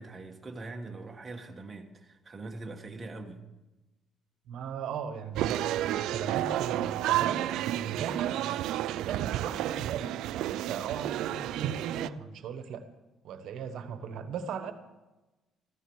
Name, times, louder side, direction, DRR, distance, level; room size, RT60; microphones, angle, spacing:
voice 1, 0.0-3.4, right 2 dB, 15° right, 1.4 m, -42 dB
voice 2, 4.5-12.9 13.2-14.7, right 7 dB, 60° right, 1.3 m, -38 dB
sound 1, 5.4-12.1, right 13 dB, 85° right, 0.4 m, -31 dB
14.5 x 14.0 x 6.2 m
cardioid pair, 170°, 0 cm